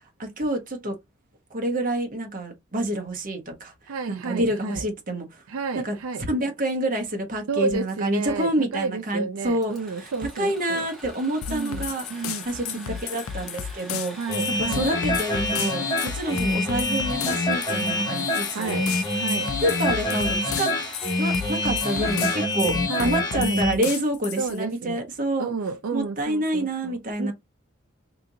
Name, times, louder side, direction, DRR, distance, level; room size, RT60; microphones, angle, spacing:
voice 1, 0.2-1.0 1.5-3.7 4.1-5.4 5.8-5.9 6.3-10.1 10.4-14.2 14.6-18.8 19.6-20.7 21.2-25.5 25.9-27.3, right 1 dB, 40° right, 1.0 m, -28 dB
voice 2, 3.9-4.8 5.5-6.2 7.5-10.9 11.5-13.0 14.2-14.9 18.5-19.5 22.9-23.6 24.4-25.0 25.4-27.3, right 4 dB, 75° right, 0.4 m, -31 dB
Engine / Sawing, 9.6-23.3, equal, ahead, 1.0 m, -42 dB
sound 1, 11.4-24.6, left 9 dB, 80° left, 0.5 m, -34 dB
sound 2, 14.3-23.7, left 2 dB, 20° left, 0.7 m, -26 dB
2.9 x 2.5 x 3.7 m
head